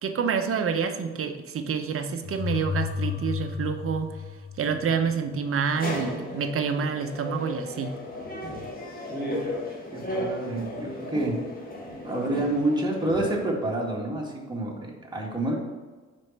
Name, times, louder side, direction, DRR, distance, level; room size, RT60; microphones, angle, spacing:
voice 1, 0.0-4.1 4.6-7.9, right 6 dB, 45° right, 7 dB, 0.8 m, -28 dB
sound 1, 2.2-5.1, left 7 dB, 50° left, 0.5 m, -32 dB
sound 2, 5.7-13.4, left 1 dB, 30° left, 1.6 m, -35 dB
voice 2, 9.1-9.5 9.9-11.4 12.0-15.5, right 2 dB, 15° right, -2 dB, 1.8 m, -28 dB
4.9 x 4.2 x 5.8 m, 1.3 s
cardioid pair, 90°, 30 cm